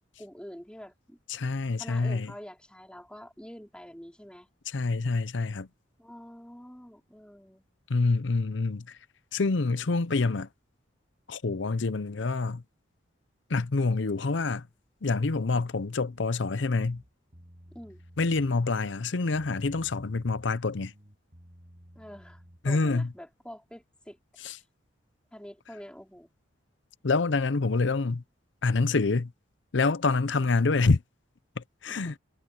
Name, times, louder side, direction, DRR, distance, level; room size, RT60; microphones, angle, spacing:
voice 1, 0.2-1.5 1.8-4.5 6.0-7.6 17.7-18.0 21.9-24.2 24.5-24.6 25.3-26.3 31.9-32.2, equal, 5° left, 4.7 m, -46 dB
voice 2, 1.3-2.3 4.7-5.7 7.9-9.0 9.3-10.5 11.3-12.6 13.5-14.7 15.0-17.0 18.2-20.9 22.6-23.1 24.4-24.6 27.0-28.2 28.6-29.3 29.7-31.0 31.6-32.1, left 3 dB, 65° left, 0.7 m, -26 dB
sound 1, 16.8-18.5 18.8-20.6 20.8-23.2, equal, 35° right, 6.4 m, -54 dB
head